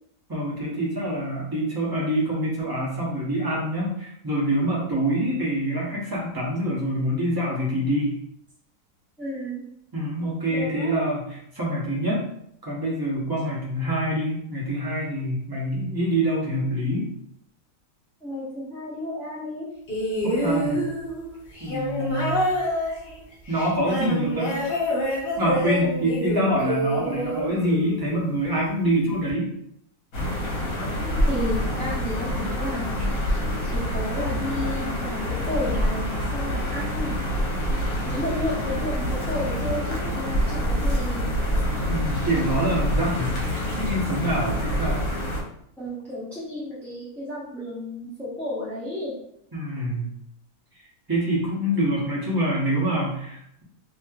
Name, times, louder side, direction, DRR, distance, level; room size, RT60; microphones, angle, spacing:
voice 1, 0.3-8.1 9.9-12.2 12.6-17.1 20.2-20.9 21.6-22.4 23.5-24.6 25.4-29.5 41.9-45.0 49.5-50.1 51.1-53.6, right 1 dB, 25° right, -6 dB, 0.5 m, -26 dB
voice 2, 9.2-9.6 10.5-10.9 18.2-19.7 25.8-25.9 30.9-37.1 38.0-41.2 45.8-49.1, left 1 dB, ahead, -12 dB, 0.8 m, -32 dB
sound 1, 19.9-28.3 29.3-29.4, equal, 45° left, 0.8 m, -27 dB
sound 2, 30.1-45.4, equal, 65° left, 1.2 m, -26 dB
3.0 x 2.9 x 2.3 m, 0.73 s
omnidirectional pair, 1.7 m